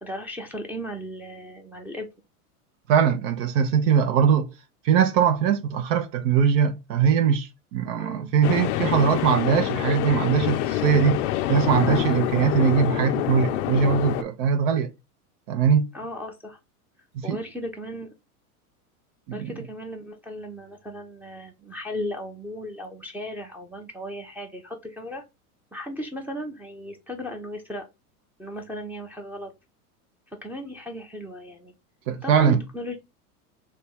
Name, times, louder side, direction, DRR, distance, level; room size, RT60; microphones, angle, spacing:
voice 1, 0.0-2.1 8.0-8.3 15.9-16.6 17.2-18.1 19.3-25.2 25.7-27.9 28.4-29.5 30.4-31.7 32.2-33.0, equal, 5° right, 0.6 m, -36 dB
voice 2, 2.9-4.5 4.8-14.9 15.5-15.9 17.2-17.4 19.3-19.5 32.1-32.6, right 7 dB, 55° right, 0.7 m, -21 dB
sound 1, 8.4-14.2, left 13 dB, 55° left, 0.5 m, -26 dB
3.5 x 2.3 x 4.1 m
hypercardioid pair, 105°, 45 cm